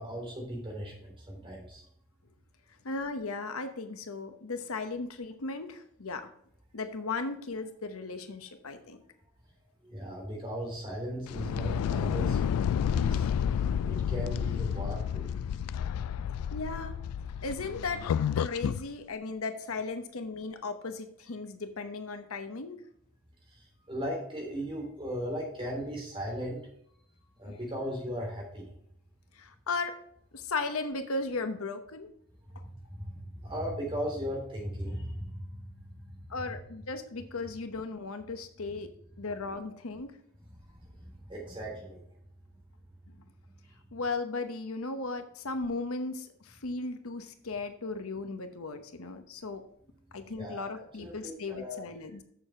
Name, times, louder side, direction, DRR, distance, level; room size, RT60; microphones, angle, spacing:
voice 1, 0.0-1.8 9.8-12.4 12.9-13.3 13.9-15.7 23.5-26.6 27.4-28.7 32.5-36.2 40.5-42.0 43.7-43.8 50.4-50.7 51.0-51.8, equal, 25° right, -2 dB, 3.4 m, -37 dB
voice 2, 2.8-6.3 6.7-9.0 16.5-17.0 17.4-22.8 27.5-27.6 29.3-30.0 30.3-32.1 36.3-38.9 39.2-40.1 43.9-49.6 50.1-52.2, left 3 dB, 70° left, 8 dB, 0.9 m, -36 dB
sound 1, 11.3-18.8, left 8 dB, 90° left, 0.3 m, -30 dB
7.0 x 6.9 x 4.3 m, 0.69 s
head